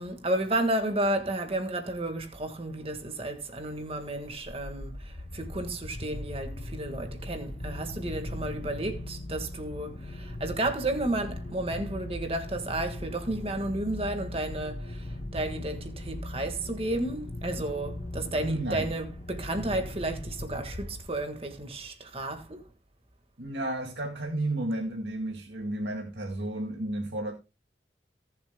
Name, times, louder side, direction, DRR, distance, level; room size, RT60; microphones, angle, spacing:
voice 1, 0.0-22.6, right 1 dB, 35° right, 1.7 m, -32 dB
sound 1, 4.1-21.5, left 1 dB, 40° left, 0.8 m, -39 dB
voice 2, 18.4-18.9 23.4-27.3, right 1 dB, 90° right, 2.0 m, -32 dB
18.5 x 7.5 x 2.2 m
head